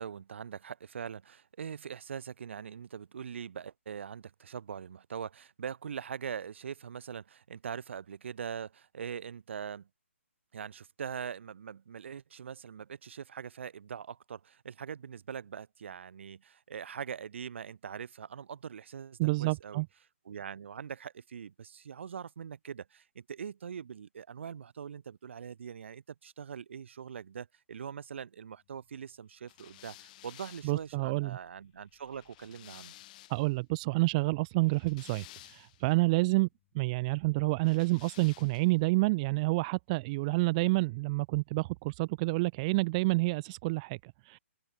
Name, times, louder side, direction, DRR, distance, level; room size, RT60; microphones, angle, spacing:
voice 1, 0.0-9.9 10.5-19.8 20.3-32.9, right 7 dB, 60° right, 2.2 m, -42 dB
voice 2, 19.2-19.9 30.6-31.4 33.3-36.5 36.7-44.4, right 23 dB, 30° right, 0.6 m, -29 dB
sound 1, 29.5-33.6 34.5-35.9 37.6-38.8, left 17 dB, 35° left, 6.3 m, -54 dB
open air
figure-of-eight pair, 140°, 7 cm